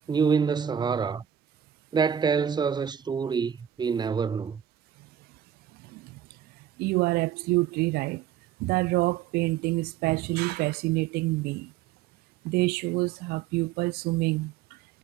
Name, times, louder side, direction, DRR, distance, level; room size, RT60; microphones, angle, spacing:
voice 1, 0.1-1.2 1.9-4.6, right 6 dB, 25° right, 1.4 m, -26 dB
voice 2, 6.8-8.2 8.6-11.7 12.4-14.5, right 22 dB, 60° right, 1.9 m, -27 dB
hypercardioid pair, 85°, 18 cm